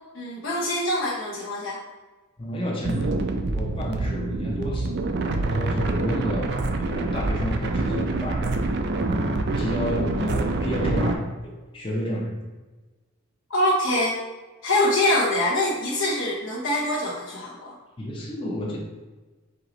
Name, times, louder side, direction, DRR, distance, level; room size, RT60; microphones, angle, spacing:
voice 1, 0.1-1.8 13.5-14.2 14.6-17.7, left 1 dB, 65° left, -5 dB, 0.7 m, -24 dB
voice 2, 2.4-5.0 5.3-8.6 9.6-11.4 11.7-12.4 18.0-18.8, equal, 25° left, -2 dB, 0.6 m, -30 dB
sound 1, 2.8-11.1, right 2 dB, 50° right, 0.4 m, -26 dB
4.6 x 2.9 x 3.8 m, 1.3 s
head